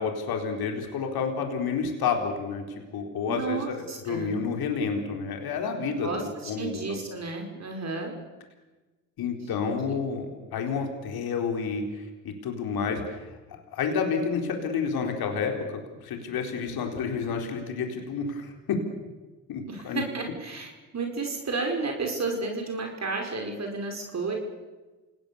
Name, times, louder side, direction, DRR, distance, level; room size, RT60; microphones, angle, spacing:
voice 1, 0.0-2.6 2.9-7.0 9.2-13.2 13.7-18.8 19.5-20.0, left 5 dB, 60° left, 4 dB, 4.2 m, -30 dB
voice 2, 3.3-4.3 6.0-8.1 10.6-10.7 19.7-24.3, right 3 dB, 40° right, 2 dB, 5.4 m, -32 dB
27.5 x 18.5 x 7.1 m, 1.2 s
hypercardioid pair, 60°, 40 cm